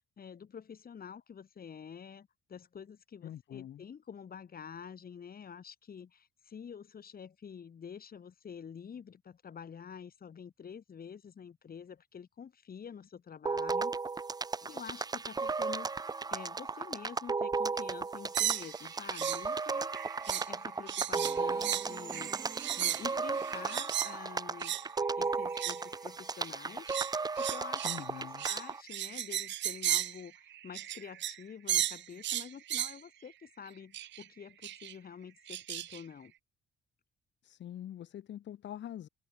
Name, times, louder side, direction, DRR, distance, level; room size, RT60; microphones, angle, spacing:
voice 1, 0.2-13.9 14.6-22.3 22.7-24.8 25.2-27.9 28.1-36.3, left 7 dB, 50° left, 5.0 m, -48 dB
voice 2, 3.2-3.8 27.8-28.4 37.4-39.1, left 11 dB, 65° left, 1.6 m, -44 dB
sound 1, 13.5-28.8, right 4 dB, 20° right, 0.6 m, -35 dB
sound 2, 18.3-19.4 19.7-20.6 20.9-24.2 24.6-24.9 25.4-25.9 26.4-31.4 31.7-33.0 33.9-34.2 34.6-34.9 35.5-36.0, right 13 dB, 65° right, 0.7 m, -35 dB
open air
cardioid pair, 90°, 20 cm